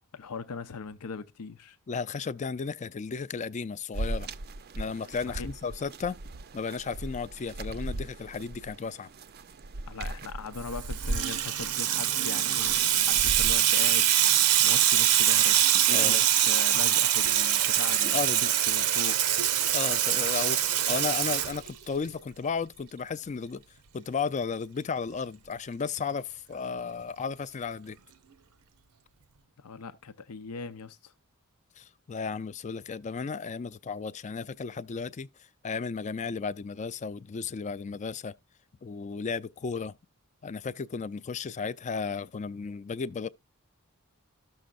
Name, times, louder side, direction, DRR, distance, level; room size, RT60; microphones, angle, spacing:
voice 1, 0.1-1.8 5.3-5.5 9.9-12.8 13.1-14.1 14.4-19.2 29.6-31.1, left 4 dB, 90° left, 0.6 m, -40 dB
voice 2, 1.9-4.3 4.8-6.2 6.5-9.1 15.9-16.3 18.0-18.4 19.7-23.6 23.9-28.0 31.8-35.3 35.6-38.3 38.8-40.0 40.4-43.3, left 5 dB, 30° left, 0.4 m, -34 dB
sound 1, 3.9-13.5, right 2 dB, 45° right, 0.5 m, -38 dB
Water tap faucet / Sink (filling or washing), 10.7-22.1, right 11 dB, 90° right, 0.8 m, -24 dB
13.5 x 6.4 x 2.3 m
head